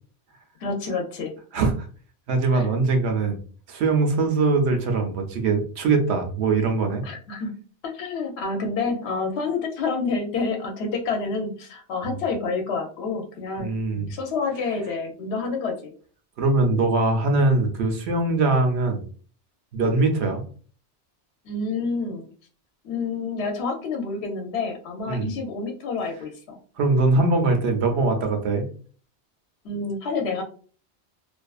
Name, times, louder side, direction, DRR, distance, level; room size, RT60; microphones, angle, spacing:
voice 1, 0.6-1.3 2.5-2.7 7.0-7.5 7.8-15.9 21.5-22.3 22.8-26.6 29.6-30.4, left 4 dB, 70° left, 3 dB, 0.8 m, -28 dB
voice 2, 1.5-1.9 2.3-3.4 3.7-7.0 13.6-14.1 16.4-19.0 19.7-20.4 25.1-25.3 26.8-28.7, right 3 dB, 75° right, 4 dB, 0.9 m, -22 dB
2.6 x 2.3 x 2.3 m, 0.42 s
omnidirectional pair, 1.2 m